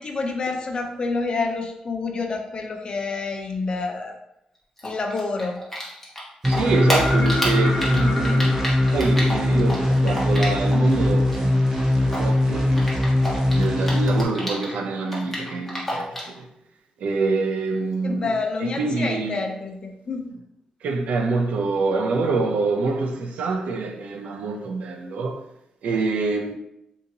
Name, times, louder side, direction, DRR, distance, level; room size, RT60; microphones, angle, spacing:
voice 1, 0.0-4.2 4.8-5.6 18.0-20.3, left 3 dB, 45° left, 0.5 m, -28 dB
Typing, 4.8-6.2 6.4-10.9 11.2-14.8 15.0-16.4, equal, 10° left, 1.1 m, -29 dB
sound 1, 6.4-14.2, left 1 dB, 20° right, 0.9 m, -21 dB
voice 2, 6.5-8.6 8.9-12.9 13.5-16.4 17.0-18.3 18.6-19.4 20.8-25.4 25.8-26.5, right 3 dB, 85° right, 0.5 m, -26 dB
sound 2, 6.6-10.4 12.3-12.4, left 2 dB, 85° left, 0.9 m, -32 dB
2.8 x 2.7 x 3.8 m
cardioid pair, 115°, 2 cm